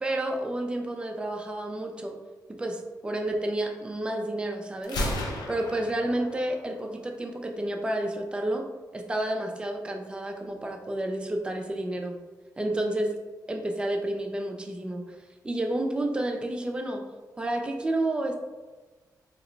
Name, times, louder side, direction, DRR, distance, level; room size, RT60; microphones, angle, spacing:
voice 1, 0.0-2.2 2.5-5.0 5.5-8.7 8.9-12.2 12.6-13.2 13.5-15.2 15.4-17.0 17.4-18.4, right 1 dB, 15° right, 2 dB, 0.4 m, -30 dB
Gunshot gunfire, 4.8-6.8, left 1 dB, 75° left, 0.6 m, -33 dB
2.9 x 2.1 x 3.8 m, 1.3 s
wide cardioid pair, 125°, 7 cm